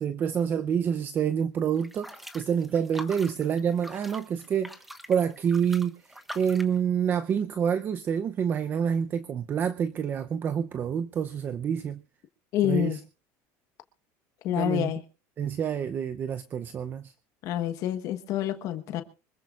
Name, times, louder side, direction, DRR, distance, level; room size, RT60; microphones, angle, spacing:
voice 1, 0.0-12.0 12.6-13.0 14.5-14.9 15.4-17.1, right 8 dB, 30° right, 0.6 m, -28 dB
sound 1, 1.8-6.8, equal, ahead, 1.2 m, -44 dB
voice 2, 12.5-13.0 14.4-15.0 17.4-19.0, left 12 dB, 50° left, 1.2 m, -27 dB
25.0 x 14.5 x 2.4 m
cardioid pair, 155°, 7 cm